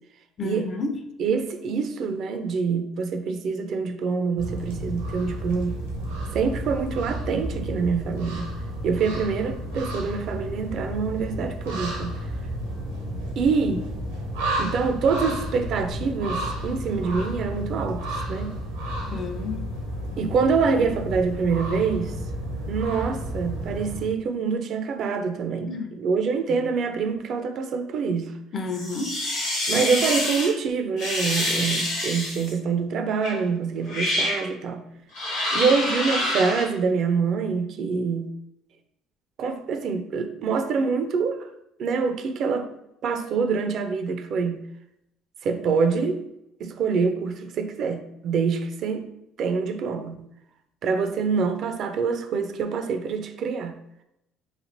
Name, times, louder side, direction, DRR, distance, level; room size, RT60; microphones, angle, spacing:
voice 1, 0.4-1.0 19.1-19.6 25.7-25.9 28.5-29.1, left 3 dB, 45° left, 0.5 m, -30 dB
voice 2, 1.2-5.8 6.3-8.5 8.8-12.2 13.4-13.9 14.6-18.0 18.3-18.6 20.2-22.2 22.7-28.3 29.7-34.8 35.5-38.3 39.4-41.5 41.8-42.7 43.0-44.6 45.4-46.2 46.6-49.1 49.4-50.1 50.8-53.8, right 5 dB, 60° right, 0.4 m, -25 dB
sound 1, 4.4-24.0, right 1 dB, 90° right, 0.7 m, -32 dB
sound 2, 28.7-30.5 31.0-32.5 33.2-33.4 33.8-34.4 35.1-36.6, left 1 dB, 75° left, 1.0 m, -26 dB
3.2 x 2.4 x 2.6 m
hypercardioid pair, 60°, 0 cm